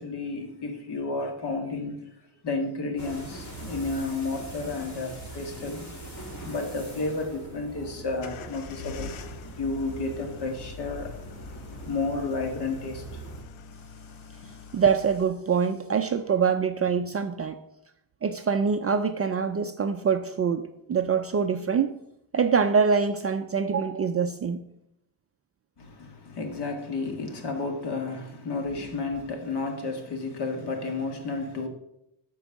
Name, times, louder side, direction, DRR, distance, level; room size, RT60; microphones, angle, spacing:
voice 1, 0.0-2.1 2.4-5.9 6.4-9.2 9.6-11.2 11.9-13.2 25.8-31.7, left 3 dB, 50° left, 2.0 m, -32 dB
sound 1, 3.0-13.4, right 2 dB, 35° left, 3.0 m, -42 dB
sound 2, 8.2-15.2, left 5 dB, 70° left, 0.9 m, -44 dB
voice 2, 14.7-17.6 18.2-21.9 22.3-24.6, right 6 dB, 30° right, 0.4 m, -24 dB
12.5 x 4.7 x 7.2 m
cardioid pair, 155°, 50 cm